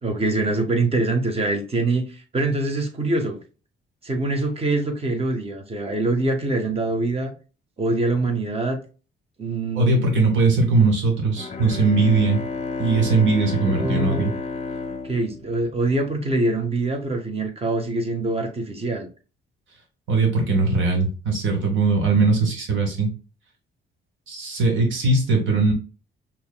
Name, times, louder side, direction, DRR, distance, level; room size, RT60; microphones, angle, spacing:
voice 1, 0.0-2.0 2.3-3.4 4.0-7.3 7.8-8.8 9.4-10.1 13.7-14.3 15.0-19.1, right 2 dB, 30° right, 1.3 m, -24 dB
voice 2, 9.8-12.4 12.8-14.3 20.1-23.1 24.3-25.7, right 3 dB, 75° right, 2.0 m, -20 dB
Bowed string instrument, 11.3-16.3, left 3 dB, 30° left, 0.6 m, -32 dB
5.4 x 3.0 x 2.2 m
cardioid pair, 90°, 20 cm